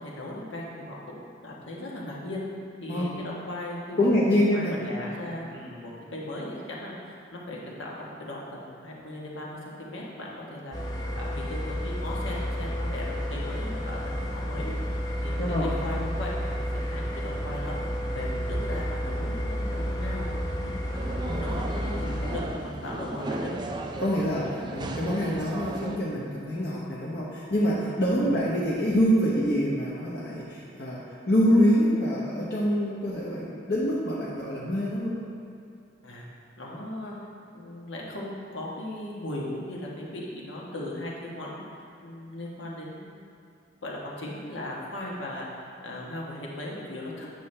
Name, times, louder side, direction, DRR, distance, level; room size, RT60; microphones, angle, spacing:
voice 1, 0.0-2.4 2.8-4.1 4.3-17.8 18.1-20.7 21.1-23.5 28.0-28.3 36.0-36.2 36.6-37.1 37.5-43.2 43.8-47.3, left 1 dB, 85° left, -4 dB, 1.4 m, -38 dB
voice 2, 4.0-4.8 15.4-15.7 21.3-21.5 24.0-35.2, equal, 55° left, -7 dB, 0.9 m, -25 dB
sound 1, 10.7-22.4, equal, 20° left, 0.7 m, -31 dB
sound 2, 20.9-26.0, right 2 dB, 25° right, 0.3 m, -35 dB
9.0 x 5.7 x 3.3 m, 2.5 s
head